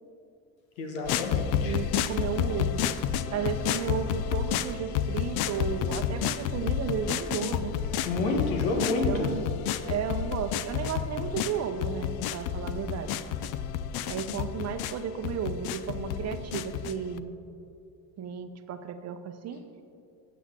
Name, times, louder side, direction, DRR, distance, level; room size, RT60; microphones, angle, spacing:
voice 1, 0.8-1.8 8.1-9.3, left 2 dB, 90° left, 2 dB, 1.2 m, -29 dB
sound 1, 1.0-17.2, left 9 dB, 65° left, 0.5 m, -31 dB
voice 2, 1.4-2.8 3.3-7.7 9.0-9.5 9.9-13.2 14.1-17.3 18.2-19.6, right 7 dB, 40° right, 9 dB, 0.7 m, -33 dB
8.4 x 8.4 x 3.7 m, 2.6 s
supercardioid pair, 100°, 40 cm